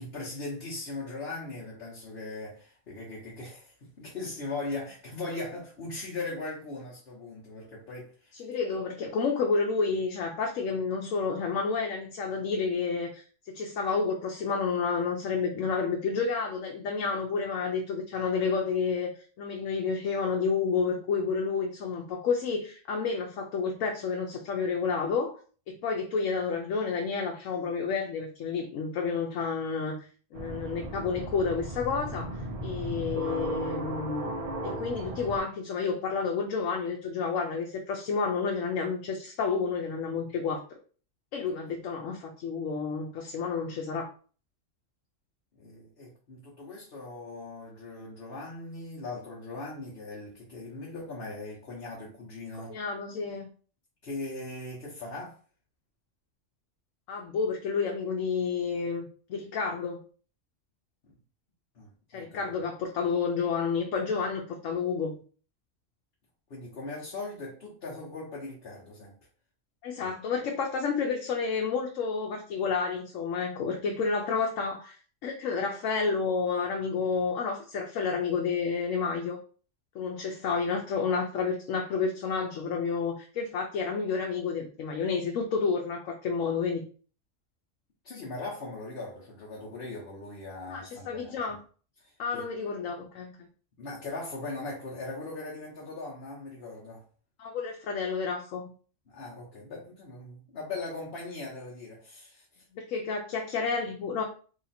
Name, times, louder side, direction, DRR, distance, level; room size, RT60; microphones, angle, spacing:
voice 1, 0.0-8.3 45.6-52.8 54.0-55.4 61.0-61.1 61.7-62.5 66.5-69.1 70.0-70.1 88.0-91.3 92.0-92.5 93.8-97.0 99.1-102.6, left 2 dB, 55° left, 1.2 m, -39 dB
voice 2, 8.4-19.1 19.4-25.4 25.7-30.1 30.3-34.3 34.6-40.6 41.3-44.1 52.7-53.5 57.1-60.0 62.1-65.2 69.8-75.0 75.2-79.4 79.9-86.8 90.7-91.6 92.2-93.4 97.4-98.7 102.7-104.2, left 5 dB, 85° left, 1.0 m, -30 dB
sound 1, 30.3-35.4, right 1 dB, 35° right, 0.7 m, -36 dB
3.2 x 2.8 x 4.1 m
omnidirectional pair, 1.3 m